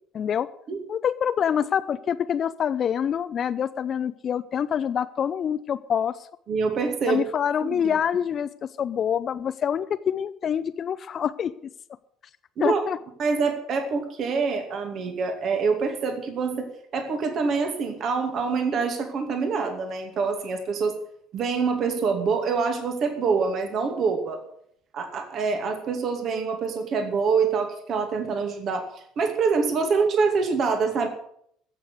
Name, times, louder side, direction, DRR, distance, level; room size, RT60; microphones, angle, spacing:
voice 1, 0.1-0.5 0.9-6.2 7.0-8.5 8.8-11.5 12.6-13.0, left 8 dB, 45° left, 13 dB, 0.6 m, -26 dB
voice 2, 6.5-7.2 7.6-7.8 12.6-12.8 13.2-21.0 21.3-24.4 24.9-28.9 29.2-31.1, right 5 dB, 50° right, 6 dB, 2.4 m, -25 dB
15.0 x 7.1 x 8.1 m, 0.68 s
hypercardioid pair, 60°, 0 cm